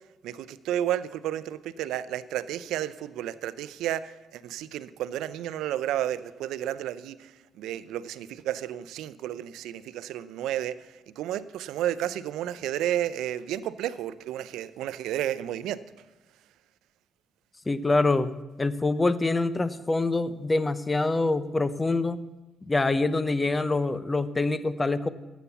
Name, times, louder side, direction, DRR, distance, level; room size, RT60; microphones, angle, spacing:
voice 1, 0.2-16.0, right 12 dB, 90° right, 0.5 m, -32 dB
voice 2, 17.7-22.2 22.7-25.1, left 2 dB, 20° left, 0.7 m, -25 dB
12.5 x 8.3 x 7.1 m
cardioid pair, 90°, 0 cm